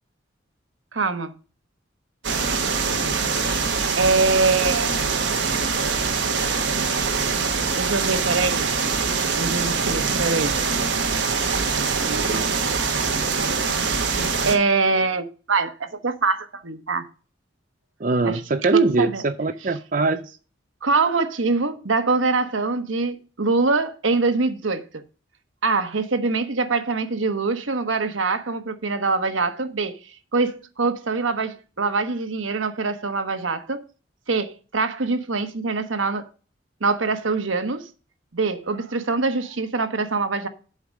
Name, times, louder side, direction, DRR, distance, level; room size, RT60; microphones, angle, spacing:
voice 1, 0.9-1.3 4.0-4.9 7.3-7.4 7.8-8.7 9.4-10.6 12.1-12.5 14.4-17.1 18.2-18.4 18.7-19.2 20.8-24.9 25.6-30.0 30.3-33.8 34.3-36.3 36.8-37.9 38.3-40.5, right 3 dB, 85° right, 1.1 m, -24 dB
sound 1, 2.2-14.6, right 5 dB, 65° right, 1.4 m, -23 dB
voice 2, 18.0-20.4, right 3 dB, 45° right, 0.5 m, -22 dB
8.0 x 5.1 x 6.4 m
head